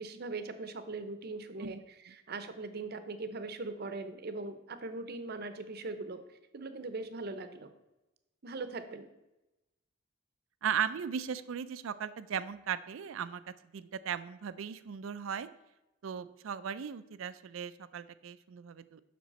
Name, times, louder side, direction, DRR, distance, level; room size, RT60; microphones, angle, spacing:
voice 1, 0.0-7.7 8.4-9.1, right 3 dB, 50° right, 10 dB, 0.7 m, -40 dB
voice 2, 10.6-13.4 13.7-15.5 16.0-19.0, right 7 dB, 80° right, 13 dB, 0.4 m, -37 dB
7.3 x 6.0 x 4.2 m, 0.98 s
head